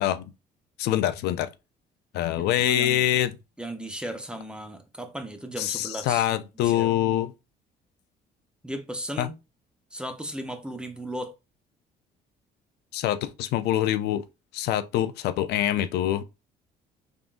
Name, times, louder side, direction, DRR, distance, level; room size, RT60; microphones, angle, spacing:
voice 1, 0.8-1.5 2.1-3.3 5.6-7.3 9.2-9.3 12.9-14.2 14.5-16.2, left 12 dB, 75° left, 0.4 m, -25 dB
voice 2, 2.4-3.1 3.6-6.3 6.5-6.9 8.6-9.3 9.9-11.3, right 1 dB, 5° right, 0.7 m, -36 dB
3.6 x 3.6 x 2.5 m
cardioid pair, 110°, 17 cm